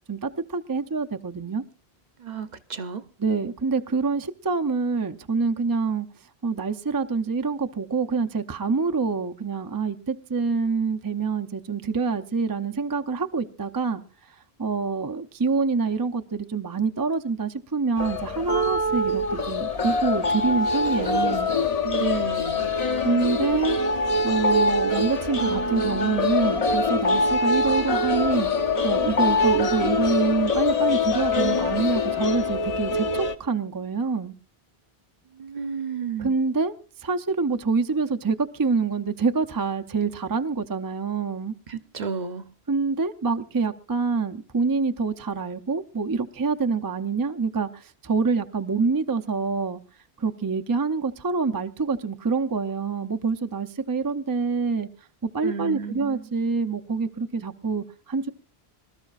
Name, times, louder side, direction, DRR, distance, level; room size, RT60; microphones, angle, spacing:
voice 1, 0.1-1.6 3.2-6.1 6.4-14.0 14.6-21.5 23.0-23.8 24.2-28.5 28.8-34.3 36.2-36.7 37.0-41.5 42.7-49.8 50.2-54.9 55.3-58.3, right 4 dB, 25° right, 0.5 m, -26 dB
voice 2, 2.2-3.0 21.8-22.7 35.4-36.4 41.7-42.5 55.4-56.2, right 6 dB, 50° right, 0.8 m, -32 dB
sound 1, 18.0-33.3, left 2 dB, 40° left, 0.9 m, -24 dB
25.0 x 13.0 x 2.4 m
omnidirectional pair, 1.0 m